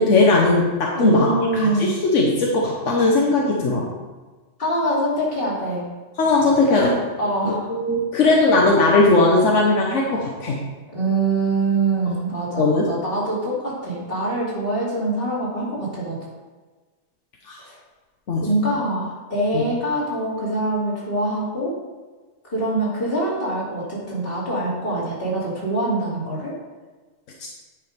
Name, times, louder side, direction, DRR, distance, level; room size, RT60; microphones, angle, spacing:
voice 1, 0.0-3.9 6.2-6.9 7.4-10.6 12.6-12.9 17.5-17.6 18.3-18.5 19.5-19.6 27.4-27.5, left 2 dB, 90° left, -1 dB, 1.4 m, -18 dB
voice 2, 0.9-1.9 4.6-5.9 6.7-6.9 7.2-7.7 10.9-16.2 17.6-17.8 18.4-21.7 22.4-26.5, right 2 dB, 50° left, -7 dB, 2.9 m, -24 dB
10.0 x 4.9 x 5.1 m, 1.3 s
omnidirectional pair, 1.2 m